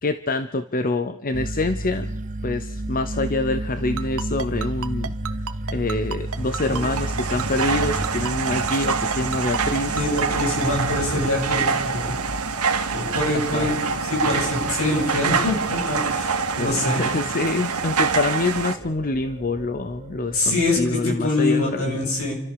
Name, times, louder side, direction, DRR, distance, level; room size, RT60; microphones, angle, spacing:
voice 1, 0.0-2.1 2.4-5.1 5.7-10.0 13.3-13.8 16.5-22.1, left 2 dB, 40° left, 11 dB, 0.8 m, -26 dB
sound 1, 1.3-21.0, right 1 dB, 35° right, 1.1 m, -33 dB
Ringtone, 4.0-10.7, right 6 dB, 65° right, 1.1 m, -30 dB
sound 2, 6.4-18.8, right 5 dB, 85° right, 1.8 m, -26 dB
voice 2, 9.9-12.2 12.9-13.8 14.0-17.0 20.3-22.4, left 2 dB, 70° left, 0 dB, 7.9 m, -24 dB
29.5 x 13.5 x 6.9 m, 0.84 s
head